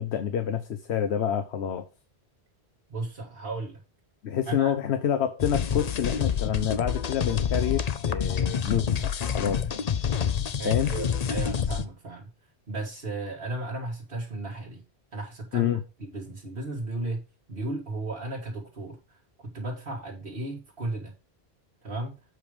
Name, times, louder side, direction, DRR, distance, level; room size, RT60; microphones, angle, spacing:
voice 1, 0.0-1.9 4.2-10.3 10.6-10.9 15.5-15.8, left 9 dB, 85° left, 1.0 m, -28 dB
voice 2, 2.9-3.8 4.4-4.7 10.6-12.3 12.7-14.8 15.1-15.7 16.0-21.1 21.8-22.2, right 2 dB, 60° right, 2.1 m, -35 dB
sound 1, 5.4-11.8, left 7 dB, 45° left, 0.6 m, -28 dB
8.0 x 5.1 x 5.1 m
omnidirectional pair, 1.1 m